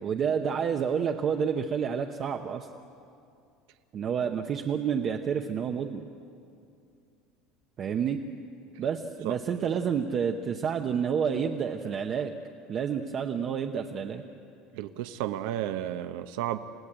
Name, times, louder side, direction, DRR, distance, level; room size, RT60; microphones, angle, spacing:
voice 1, 0.0-2.7 3.9-6.1 7.8-8.2 8.8-12.3 12.7-14.2, right 7 dB, 25° right, 4 dB, 0.8 m, -29 dB
voice 2, 14.7-16.6, right 12 dB, 65° right, 9 dB, 0.8 m, -32 dB
28.5 x 17.0 x 8.8 m, 2.5 s
cardioid pair, 180°, 0 cm